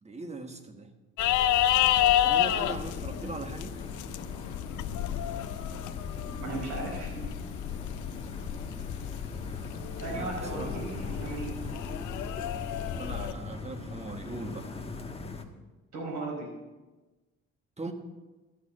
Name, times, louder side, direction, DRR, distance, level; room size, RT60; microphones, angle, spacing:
voice 1, 0.0-0.9 2.2-3.7 10.1-10.9 12.9-14.7 17.8-17.9, right 2 dB, 20° right, 6 dB, 1.5 m, -39 dB
sound 1, 1.2-13.3, left 12 dB, 80° left, 0.6 m, -30 dB
sound 2, 2.6-15.4, left 3 dB, 20° left, 1.3 m, -41 dB
voice 2, 6.4-7.3 10.0-11.5 15.9-16.5, right 3 dB, 65° right, -3 dB, 4.7 m, -36 dB
Bowed string instrument, 10.0-15.0, equal, ahead, 1.2 m, -50 dB
13.5 x 6.5 x 7.7 m, 1.2 s
cardioid pair, 90°, 30 cm